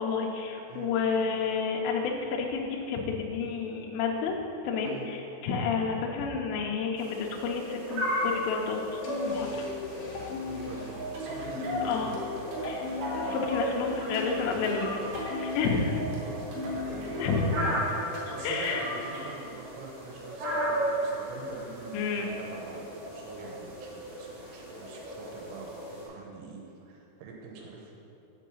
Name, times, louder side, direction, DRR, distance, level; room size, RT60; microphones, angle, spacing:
voice 1, 0.0-4.4 4.6-9.5 11.8-12.1 12.6-12.9 13.1-15.0 15.3-16.0 17.2-17.5 18.4-18.8 21.9-22.3, left 5 dB, 85° left, 0 dB, 2.8 m, -30 dB
sound 1, 7.0-26.1, equal, 55° right, 2.8 m, -36 dB
sound 2, 9.0-17.8, left 3 dB, 60° left, 3.0 m, -37 dB
voice 2, 10.4-12.3 12.9-13.2 15.8-27.9, right 4 dB, 90° right, -1 dB, 3.5 m, -44 dB
sound 3, 11.1-19.5, right 2 dB, 75° right, 3.6 m, -40 dB
7.5 x 4.6 x 7.0 m, 2.8 s
omnidirectional pair, 5.6 m